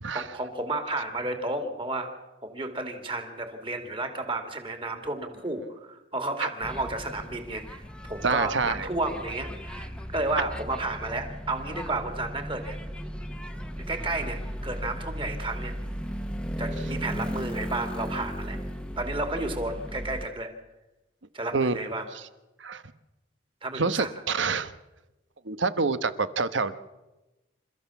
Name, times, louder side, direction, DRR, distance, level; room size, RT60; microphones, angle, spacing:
voice 1, 0.1-2.1 2.4-12.8 13.8-15.8 16.6-18.6 19.0-20.5 21.3-22.1 23.6-24.1, right 2 dB, 25° right, 6 dB, 2.6 m, -32 dB
sound 1, 6.6-20.3, equal, 5° left, 1.0 m, -36 dB
voice 2, 8.2-8.9 21.5-21.8 22.6-22.8 23.7-24.7 25.4-26.8, right 4 dB, 80° right, 13 dB, 1.2 m, -27 dB
27.5 x 14.5 x 7.2 m, 1.0 s
head